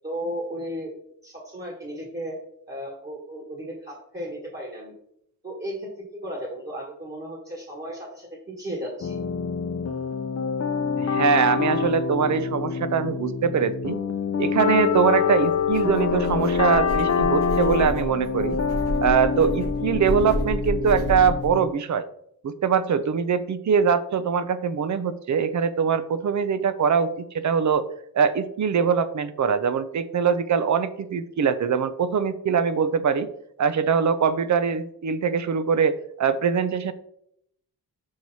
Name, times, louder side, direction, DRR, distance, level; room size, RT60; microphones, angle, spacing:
voice 1, 0.0-0.9 1.2-2.4 2.7-4.9 5.4-5.9 6.2-9.2, equal, 25° right, -3 dB, 1.6 m, -34 dB
sound 1, 9.0-21.7, left 6 dB, 40° left, 0.6 m, -26 dB
voice 2, 11.0-14.0 14.4-18.6 19.0-22.0 22.4-27.9 28.1-33.3 33.6-36.9, right 6 dB, 50° right, 13 dB, 0.6 m, -23 dB
sound 2, 15.4-21.5, equal, 70° right, 3.0 m, -31 dB
6.5 x 4.6 x 4.1 m, 0.72 s
wide cardioid pair, 120°, 37 cm